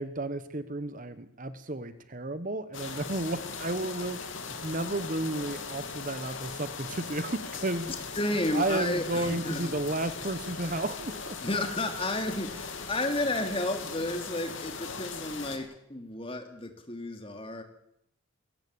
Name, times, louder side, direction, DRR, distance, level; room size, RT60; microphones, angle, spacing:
voice 1, 0.0-7.9 8.5-11.4, right 2 dB, 40° right, 13 dB, 1.1 m, -33 dB
sound 1, 2.7-15.6, left 5 dB, 65° left, 3.2 m, -39 dB
voice 2, 7.8-9.7 11.4-17.6, left 1 dB, 25° left, 6 dB, 2.9 m, -32 dB
21.5 x 18.0 x 8.6 m, 0.76 s
head